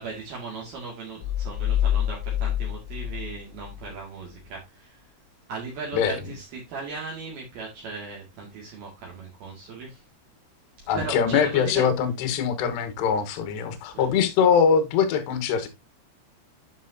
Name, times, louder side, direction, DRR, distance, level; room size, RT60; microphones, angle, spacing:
voice 1, 0.0-5.0 5.5-10.0 10.9-11.9 13.0-13.1 13.9-14.1, right 4 dB, 60° right, 3.6 m, -37 dB
sound 1, 1.2-4.0, left 11 dB, 85° left, 3.2 m, -27 dB
voice 2, 10.9-15.7, left 7 dB, 70° left, 3.1 m, -22 dB
9.4 x 7.3 x 2.7 m
omnidirectional pair, 5.6 m